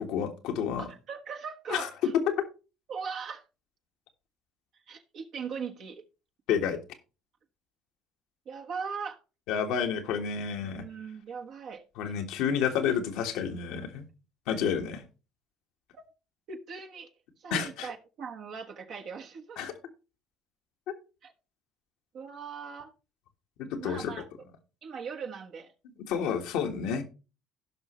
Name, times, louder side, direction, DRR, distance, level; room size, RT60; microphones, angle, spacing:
voice 1, 0.0-0.9 1.7-1.9 2.3-2.4 6.5-6.8 9.5-10.8 12.0-14.0 14.5-15.0 17.5-17.9 19.6-19.7 23.6-24.1 26.1-27.0, left 7 dB, 75° left, 1.6 m, -30 dB
voice 2, 0.8-2.1 2.9-3.4 4.9-6.0 8.4-9.2 10.6-11.8 14.5-14.6 15.9-16.1 16.5-17.1 17.4-19.6 21.2-21.3 22.1-22.9 23.8-24.3 24.8-25.7, right 6 dB, 60° right, 1.3 m, -39 dB
16.5 x 5.7 x 3.1 m
hypercardioid pair, 65°, 0 cm